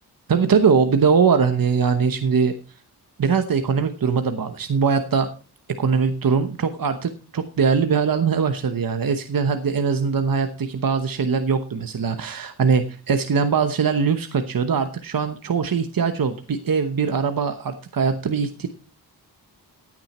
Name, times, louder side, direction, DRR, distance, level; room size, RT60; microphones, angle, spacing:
voice 1, 0.3-2.5 3.2-5.3 5.8-18.7, right 5 dB, 55° right, 8 dB, 1.1 m, -21 dB
15.5 x 9.1 x 4.3 m, 0.36 s
wide cardioid pair, 110°, 40 cm